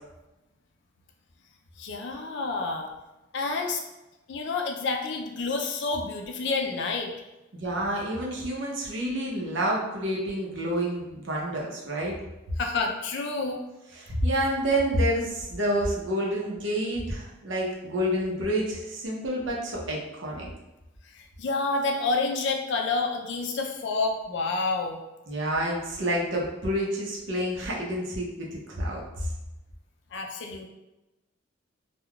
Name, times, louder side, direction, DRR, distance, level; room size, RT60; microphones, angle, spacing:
voice 1, 1.8-2.9 3.3-3.8 4.3-7.1 12.6-13.6 21.1-25.0 30.1-30.7, left 3 dB, 65° left, 3 dB, 0.4 m, -29 dB
voice 2, 7.5-12.1 13.9-20.5 25.3-29.3, equal, 65° right, -3 dB, 0.7 m, -28 dB
3.4 x 2.2 x 2.3 m, 1.0 s
head